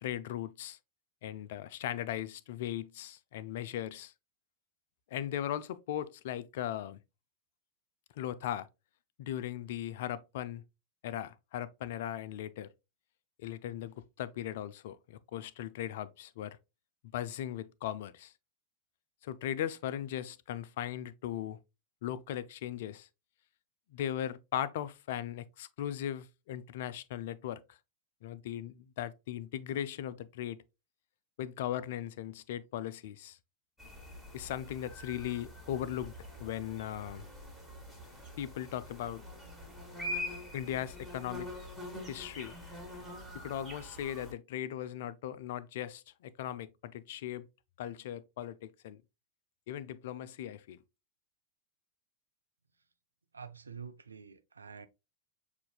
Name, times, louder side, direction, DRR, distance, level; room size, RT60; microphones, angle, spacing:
voice 1, 0.0-0.8 1.2-4.1 5.1-7.0 8.2-8.7 9.2-10.6 11.0-12.7 13.4-16.6 17.1-18.3 19.2-21.6 22.0-23.1 23.9-27.8 28.2-30.6 31.4-33.4 34.3-36.1 36.4-37.2 38.4-39.2 40.5-41.5 42.1-42.6 43.3-47.5 47.8-49.0 49.7-50.8, left 11 dB, 55° left, 0.3 m, -38 dB
sound 1, 33.8-44.3, left 1 dB, ahead, 1.6 m, -44 dB
voice 2, 53.3-54.9, right 6 dB, 75° right, 0.4 m, -47 dB
6.8 x 2.5 x 2.2 m
figure-of-eight pair, 90°, 0 cm